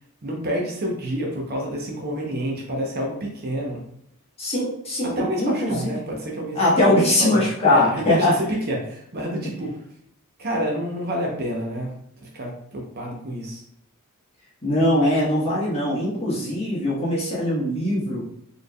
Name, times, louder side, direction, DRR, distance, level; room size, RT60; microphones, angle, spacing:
voice 1, 0.2-3.8 5.2-6.8 7.2-9.8 10.4-11.9 12.2-13.6, equal, 45° right, -1 dB, 0.8 m, -28 dB
voice 2, 4.4-5.9 6.5-8.3 14.6-18.2, left 1 dB, 25° left, -6 dB, 1.2 m, -21 dB
4.2 x 3.3 x 2.2 m, 0.71 s
head